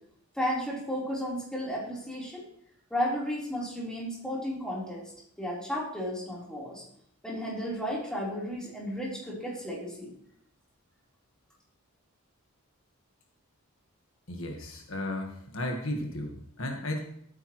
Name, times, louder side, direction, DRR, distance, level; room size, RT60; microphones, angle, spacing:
voice 1, 0.3-2.4 2.9-5.0 5.4-6.8 7.2-10.1, equal, 5° left, -6 dB, 3.7 m, -33 dB
voice 2, 14.3-17.0, left 1 dB, 65° left, 2 dB, 1.5 m, -34 dB
13.5 x 9.2 x 3.1 m, 0.68 s
head